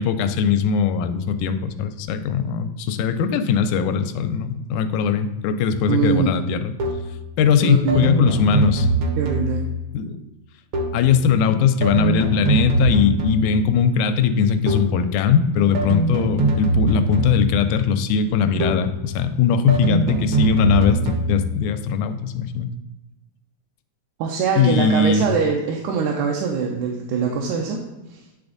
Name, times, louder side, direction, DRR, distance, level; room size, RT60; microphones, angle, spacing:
voice 1, 0.0-6.7 7.4-8.9 9.9-10.2 10.9-22.7 24.6-25.3, left 6 dB, 85° left, 9 dB, 2.0 m, -20 dB
sound 1, 5.7-5.9 6.8-7.2 7.9-9.8 10.7-11.2 11.8-13.6 14.7-15.1 15.7-17.7 18.6-19.0 19.7-21.5, right 3 dB, 65° right, 1.2 m, -23 dB
voice 2, 5.9-6.3 7.6-8.1 9.2-9.6 24.2-27.8 28.1-28.2, right 6 dB, 85° right, 0 dB, 2.1 m, -23 dB
10.0 x 3.5 x 3.9 m, 1.1 s
omnidirectional pair, 3.4 m